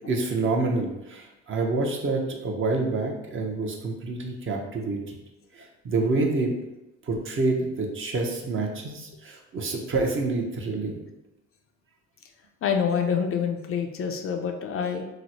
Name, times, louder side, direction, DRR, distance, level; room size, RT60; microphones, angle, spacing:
voice 1, 0.1-5.2 5.6-6.5 7.1-11.0, right 3 dB, 45° right, 1 dB, 0.7 m, -27 dB
voice 2, 12.6-15.0, left 7 dB, 50° left, 4 dB, 0.4 m, -26 dB
3.0 x 2.0 x 4.1 m, 0.94 s
cardioid pair, 90°, 30 cm